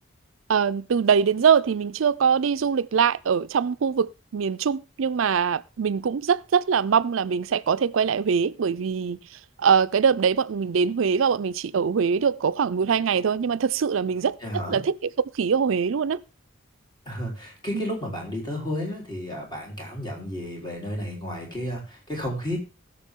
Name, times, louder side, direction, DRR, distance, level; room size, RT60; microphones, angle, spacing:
voice 1, 0.5-9.2 9.6-15.1 15.3-16.2 17.7-17.8, right 6 dB, 85° right, 0.5 m, -23 dB
voice 2, 14.4-14.8 17.1-22.6, equal, 20° left, 3.8 m, -32 dB
20.0 x 6.7 x 3.7 m
head